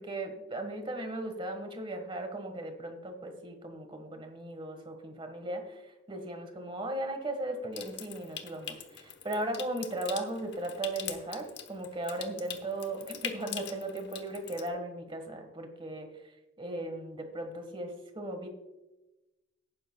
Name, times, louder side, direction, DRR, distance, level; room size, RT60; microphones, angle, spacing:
voice 1, 0.0-16.1 16.6-18.5, right 1 dB, 30° right, 6 dB, 1.5 m, -37 dB
Water tap faucet / Sink (filling or washing) / Trickle dribble, 7.7-14.7, left 9 dB, 65° left, 1.1 m, -43 dB
18.0 x 10.0 x 2.3 m, 1.0 s
head